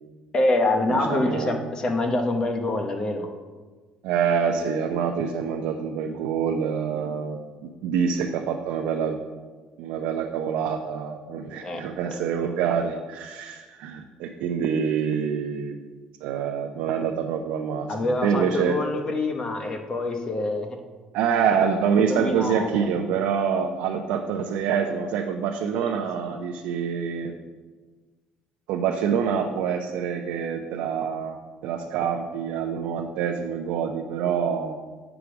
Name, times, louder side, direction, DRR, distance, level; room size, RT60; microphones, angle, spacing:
voice 1, 0.3-3.3 11.6-12.6 17.9-20.8 21.9-22.9, left 2 dB, 30° left, 4 dB, 0.9 m, -26 dB
voice 2, 0.9-1.5 4.0-7.4 7.8-9.2 9.8-15.8 16.2-18.8 21.1-27.4 28.7-31.4 31.6-34.8, right 7 dB, 80° right, 2 dB, 0.6 m, -26 dB
8.1 x 5.0 x 6.0 m, 1.4 s
cardioid pair, 155°, 3 cm